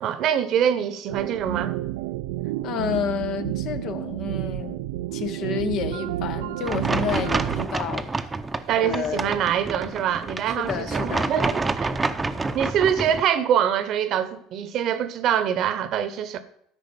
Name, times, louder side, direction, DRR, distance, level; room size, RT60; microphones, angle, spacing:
voice 1, 0.0-1.7 8.7-11.9 12.5-16.4, right 9 dB, 60° right, 0.9 m, -24 dB
sound 1, 1.1-7.7, right 15 dB, 85° right, 0.3 m, -30 dB
voice 2, 2.6-4.8 5.1-8.3 8.8-9.4 10.6-11.3, left 8 dB, 60° left, 0.9 m, -30 dB
sound 2, 6.6-13.2, right 3 dB, 20° right, 0.6 m, -28 dB
12.5 x 5.0 x 5.3 m
supercardioid pair, 90°, 0 cm